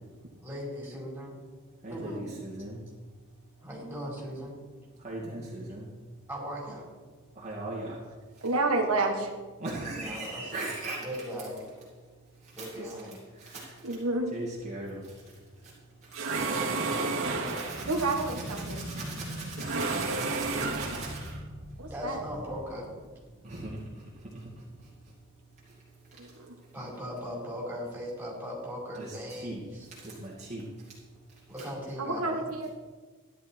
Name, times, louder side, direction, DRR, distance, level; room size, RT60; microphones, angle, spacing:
voice 1, 0.4-1.4 1.9-2.3 3.6-4.6 6.3-6.8 9.9-10.7 11.0-11.6 12.5-13.2 16.5-17.1 21.9-22.9 26.7-29.9 31.5-32.5, equal, 10° right, -4 dB, 4.7 m, -39 dB
voice 2, 1.8-2.8 5.0-5.8 7.4-8.0 9.6-11.2 12.6-12.9 13.4-13.7 14.3-15.0 17.5-21.3 23.4-23.8 28.9-29.6 30.0-30.6, right 2 dB, 35° right, -6 dB, 2.3 m, -39 dB
voice 3, 8.4-9.3 13.8-14.3 17.8-18.8 21.8-22.2 26.2-26.5 32.0-32.7, right 2 dB, 85° right, 1 dB, 1.6 m, -29 dB
sound 1, 16.1-18.0 19.6-21.3, right 3 dB, 65° right, 2.2 m, -31 dB
sound 2, 17.6-23.6, right 1 dB, 50° right, 2.0 m, -42 dB
14.5 x 11.0 x 4.5 m, 1.4 s
head